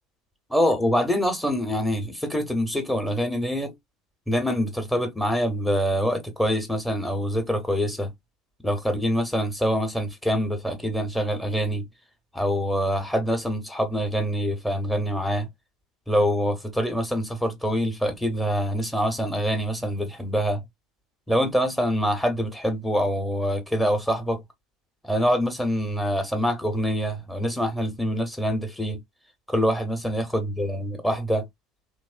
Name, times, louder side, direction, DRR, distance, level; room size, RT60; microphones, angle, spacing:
voice 1, 0.5-3.7 4.3-8.1 8.6-11.9 12.3-15.5 16.1-20.6 21.3-24.4 25.0-29.0 29.5-31.5, equal, 5° left, 1.0 m, -25 dB
3.1 x 2.5 x 2.4 m
figure-of-eight pair, 70°, 0 cm